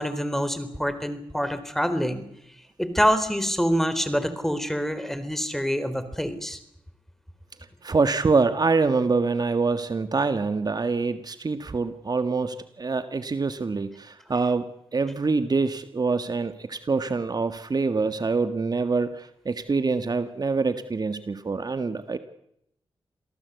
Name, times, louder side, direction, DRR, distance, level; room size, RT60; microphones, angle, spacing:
voice 1, 0.0-2.2 2.8-6.6, equal, 5° left, 12 dB, 4.1 m, -26 dB
voice 2, 7.8-22.2, right 4 dB, 45° right, 10 dB, 1.7 m, -25 dB
28.0 x 17.5 x 8.3 m, 0.77 s
cardioid pair, 55°, 9 cm